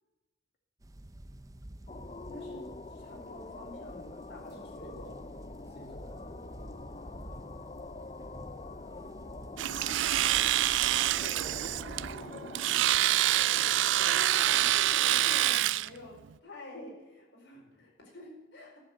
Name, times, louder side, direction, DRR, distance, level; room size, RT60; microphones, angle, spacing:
sound 1, 0.8-12.2, right 1 dB, 20° right, 0.6 m, -48 dB
sound 2, 1.9-15.6, left 3 dB, 30° left, 0.5 m, -46 dB
voice 1, 2.3-4.6 7.2-8.0 9.7-10.6 12.1-12.5 13.2-13.7 14.0-18.8, left 1 dB, 75° left, -2 dB, 4.6 m, -49 dB
voice 2, 4.4-5.2 5.7-6.1 11.1-12.4 13.4-13.8 14.3-14.7 17.5-17.8, equal, 55° left, 1 dB, 2.1 m, -50 dB
Domestic sounds home sounds, 9.6-15.9, right 14 dB, 80° right, 0.3 m, -26 dB
12.0 x 7.4 x 7.9 m, 1.1 s
head